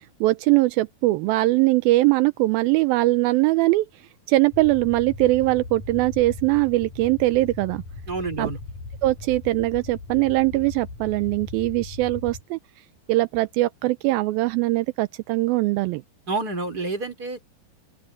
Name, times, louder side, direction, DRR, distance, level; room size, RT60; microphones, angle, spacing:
voice 1, 0.2-3.9 4.3-7.8 8.4-8.5 9.0-12.6 13.1-16.0, right 19 dB, 85° right, 2.4 m, -21 dB
sound 1, 4.5-12.4, left 3 dB, 60° left, 6.3 m, -38 dB
voice 2, 8.1-8.6 16.3-17.5, right 3 dB, 25° right, 6.0 m, -29 dB
open air
omnidirectional pair, 4.3 m